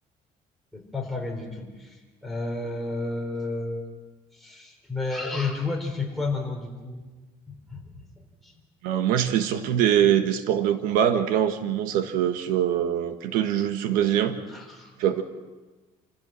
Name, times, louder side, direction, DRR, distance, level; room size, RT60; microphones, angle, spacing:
voice 1, 0.7-3.9 4.3-7.0 7.5-8.1 8.4-8.5 14.5-14.9, left 3 dB, ahead, -1 dB, 3.9 m, -32 dB
voice 2, 8.8-14.4 15.0-15.2, right 10 dB, 85° right, 8 dB, 1.4 m, -23 dB
28.5 x 15.5 x 6.3 m, 1.2 s
cardioid pair, 160°, 14 cm